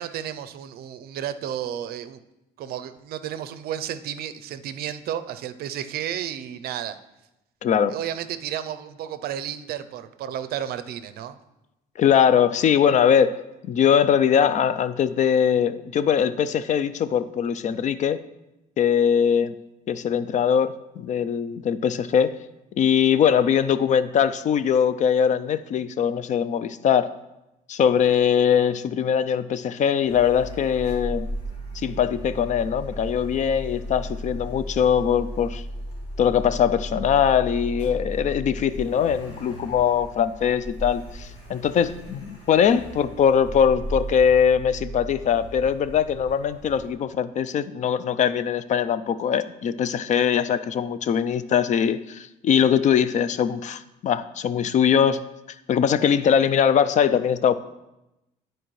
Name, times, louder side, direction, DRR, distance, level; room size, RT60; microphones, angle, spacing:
voice 1, 0.0-2.2 2.6-7.0 7.9-11.4, right 10 dB, 65° right, 12 dB, 0.5 m, -32 dB
voice 2, 7.6-7.9 12.0-13.4 13.7-18.2 18.8-19.6 19.9-22.3 22.8-27.1 27.7-31.3 31.8-35.6 36.2-55.2 55.7-57.5, left 8 dB, 45° left, 14 dB, 0.4 m, -21 dB
Car, 30.0-46.9, equal, 85° left, 2.2 m, -36 dB
12.5 x 4.5 x 3.1 m, 0.93 s
cardioid pair, 110°, 17 cm